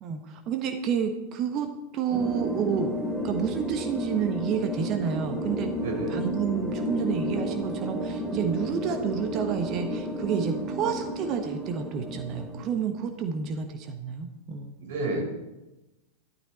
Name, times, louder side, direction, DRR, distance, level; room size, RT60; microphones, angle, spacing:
voice 1, 0.0-3.0 3.2-5.7 6.1-14.8, right 7 dB, 35° right, 6 dB, 1.3 m, -30 dB
sound 1, 2.1-12.7, right 1 dB, 10° right, 3.1 m, -32 dB
voice 2, 5.8-6.2 14.8-15.3, right 2 dB, 55° right, 1 dB, 4.9 m, -30 dB
13.5 x 13.0 x 4.3 m, 1.0 s
figure-of-eight pair, 90°, 0 cm